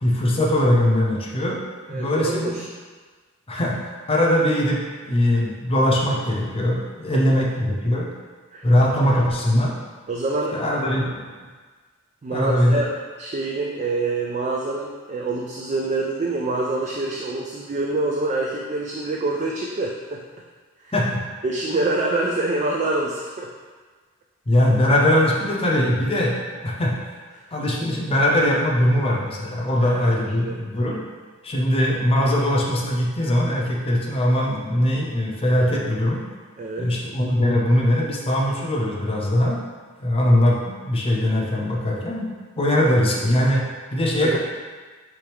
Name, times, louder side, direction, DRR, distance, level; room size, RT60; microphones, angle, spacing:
voice 1, 0.0-1.6 1.9-2.5 3.5-8.1 8.6-9.7 10.5-11.3 12.3-12.8 20.9-21.2 24.5-26.9 27.5-31.0 31.4-36.2 36.8-39.6 40.0-42.3 42.6-43.6 43.9-44.4, left 1 dB, 25° left, -2 dB, 0.7 m, -21 dB
voice 2, 1.9-2.7 8.5-8.7 10.1-10.5 12.2-12.9 13.2-20.2 20.8-20.9 21.4-23.5 29.8-30.0 30.4-30.6 36.6-36.9 44.2-44.4, right 2 dB, 35° right, -1 dB, 0.3 m, -26 dB
4.6 x 3.4 x 3.4 m, 1.4 s
head